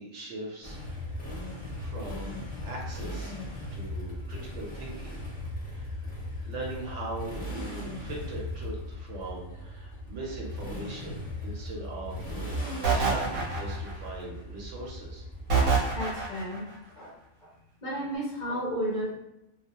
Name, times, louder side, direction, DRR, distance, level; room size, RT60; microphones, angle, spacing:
voice 1, 0.0-3.4 3.7-5.1 5.7-5.9 6.5-15.2, right 2 dB, 65° right, -2 dB, 0.9 m, -40 dB
Motorcycle, 0.6-16.4, left 1 dB, 10° left, 0.6 m, -38 dB
sound 1, 12.8-14.1 15.5-16.6, right 5 dB, 80° right, 1.1 m, -25 dB
voice 2, 15.9-16.6 16.9-17.5 17.8-19.1, equal, 45° left, -7 dB, 0.6 m, -33 dB
2.4 x 2.0 x 2.8 m, 0.86 s
omnidirectional pair, 1.4 m